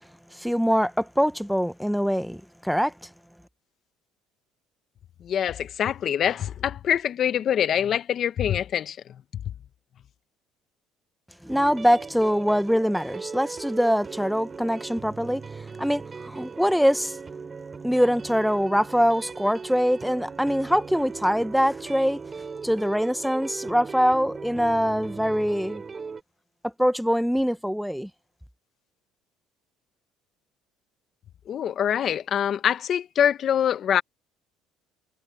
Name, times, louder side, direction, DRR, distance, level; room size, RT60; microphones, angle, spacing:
voice 1, 0.3-3.1 11.4-15.4 15.8-17.2 17.8-22.2 22.6-25.8 26.6-28.1, equal, ahead, 0.9 m, -23 dB
voice 2, 5.2-9.0 31.5-34.0, left 9 dB, 50° left, 1.0 m, -24 dB
sound 1, 11.5-26.2, right 5 dB, 30° right, 8.0 m, -38 dB
supercardioid pair, 90°, 0 cm